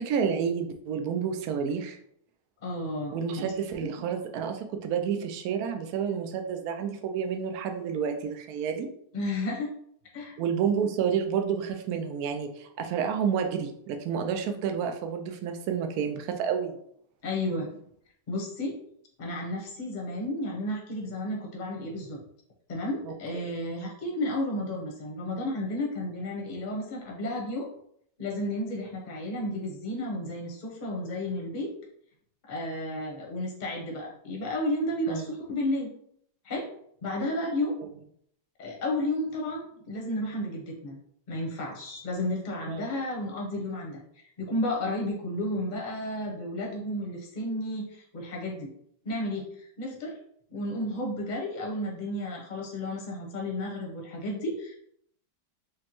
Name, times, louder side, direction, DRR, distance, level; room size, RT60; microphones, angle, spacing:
voice 1, 0.0-2.0 3.1-8.9 10.4-16.8 23.3-23.5 35.1-35.2 42.7-42.9, right 7 dB, 70° right, 5 dB, 1.0 m, -30 dB
voice 2, 2.6-3.5 3.8-3.9 9.1-9.7 10.1-10.4 17.2-17.8 18.3-18.8 19.2-22.2 22.7-27.7 28.2-31.7 32.5-35.9 36.4-36.7 37.0-37.8 38.6-41.0 41.3-48.7 49.0-50.2 50.5-54.7, left 1 dB, 35° left, -2 dB, 0.8 m, -32 dB
5.0 x 2.2 x 2.9 m, 0.68 s
omnidirectional pair, 1.8 m